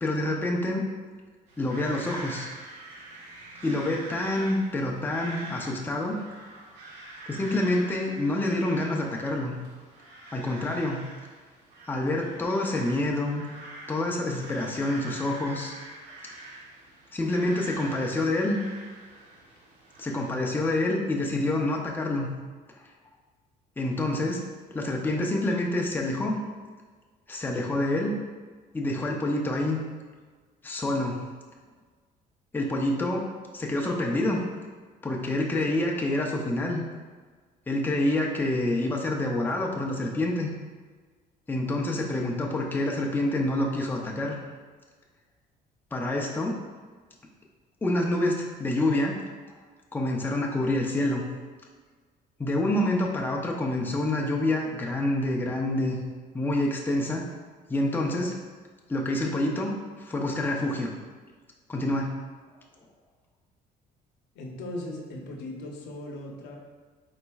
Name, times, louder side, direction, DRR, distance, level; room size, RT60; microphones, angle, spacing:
voice 1, 0.0-0.8 1.6-2.5 3.6-6.2 7.3-9.5 10.3-11.0 11.9-13.4 13.9-15.8 17.1-18.6 20.0-22.3 23.8-24.4 24.7-26.4 27.3-28.1 28.7-29.8 30.6-31.2 32.5-33.3 33.5-34.4 35.0-36.8 37.7-40.5 41.5-44.4 45.9-46.6 47.8-49.2 49.9-51.2 52.4-56.0 56.3-57.3 57.7-58.3 58.9-59.7 60.0-60.9 61.7-62.1, left 1 dB, 10° left, -1 dB, 0.5 m, -27 dB
sound 1, 1.5-20.3, right 2 dB, 90° right, 0.9 m, -44 dB
voice 2, 64.3-66.6, left 1 dB, 80° left, 1 dB, 0.7 m, -38 dB
4.3 x 4.0 x 2.3 m, 1.4 s
cardioid pair, 110°, 17 cm